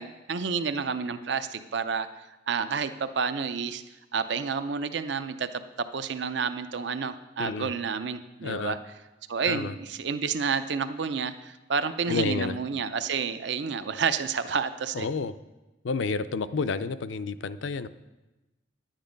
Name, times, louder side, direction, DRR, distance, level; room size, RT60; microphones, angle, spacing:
voice 1, 0.0-2.1 2.5-3.8 4.1-8.8 9.3-15.1, right 5 dB, 65° right, 11 dB, 0.6 m, -30 dB
voice 2, 7.4-7.7 8.4-8.7 9.5-9.7 12.1-12.6 14.9-15.3 15.8-17.9, left 4 dB, 75° left, 12 dB, 0.5 m, -30 dB
10.5 x 9.0 x 5.2 m, 1.0 s
head